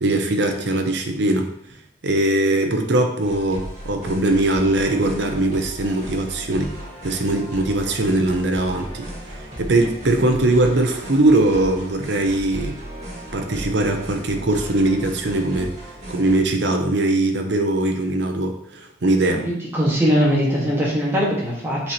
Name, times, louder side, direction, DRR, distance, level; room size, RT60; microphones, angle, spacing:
voice 1, 0.0-1.5 2.0-6.8 7.0-12.8 13.3-15.8 16.1-19.5, right 2 dB, 60° right, 4 dB, 0.7 m, -21 dB
sound 1, 3.2-16.4, right 1 dB, 35° right, 2.0 m, -36 dB
voice 2, 19.3-21.9, equal, 10° right, -6 dB, 1.8 m, -21 dB
7.7 x 4.2 x 3.0 m, 0.73 s
head